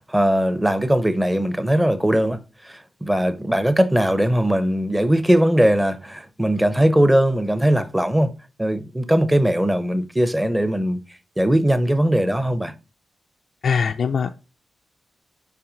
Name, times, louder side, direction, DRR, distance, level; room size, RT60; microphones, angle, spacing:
voice 1, 0.1-8.3 8.6-11.0 11.4-12.7, right 1 dB, 10° right, 0.7 m, -20 dB
voice 2, 13.6-14.4, left 6 dB, 60° left, 0.4 m, -21 dB
5.9 x 4.7 x 3.8 m
wide cardioid pair, 115°, 0 cm